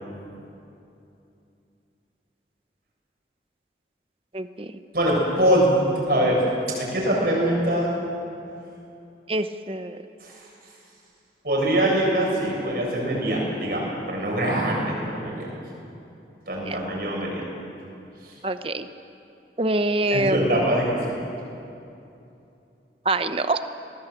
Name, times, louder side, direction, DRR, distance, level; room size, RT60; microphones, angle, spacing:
voice 1, 4.3-4.7 9.3-10.0 16.7-16.8 18.4-18.9 19.6-20.7 23.0-23.6, right 2 dB, 30° right, 10 dB, 0.9 m, -25 dB
voice 2, 4.9-6.4 6.8-7.9 10.2-10.3 11.4-15.5 16.5-17.4 18.2-18.3 20.1-21.2, right 1 dB, 55° right, -3 dB, 7.6 m, -23 dB
23.0 x 20.0 x 8.1 m, 2.7 s
head